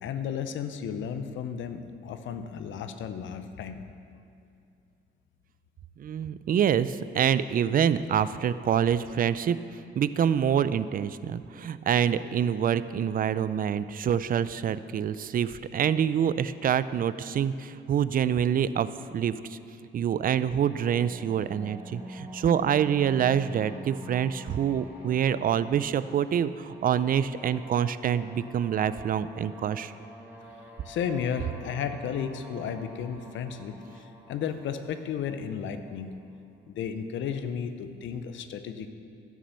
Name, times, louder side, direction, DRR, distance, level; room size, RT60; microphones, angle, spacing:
voice 1, 0.0-3.9 30.9-36.1 36.7-38.9, left 7 dB, 75° left, 9 dB, 0.7 m, -33 dB
voice 2, 6.0-9.6 10.0-18.9 19.1-19.6 19.9-29.9, right 8 dB, 45° right, 15 dB, 0.4 m, -26 dB
sound 1, 20.4-36.2, equal, 10° right, 1.9 m, -46 dB
11.5 x 6.2 x 6.9 m, 2.5 s
cardioid pair, 90°, 20 cm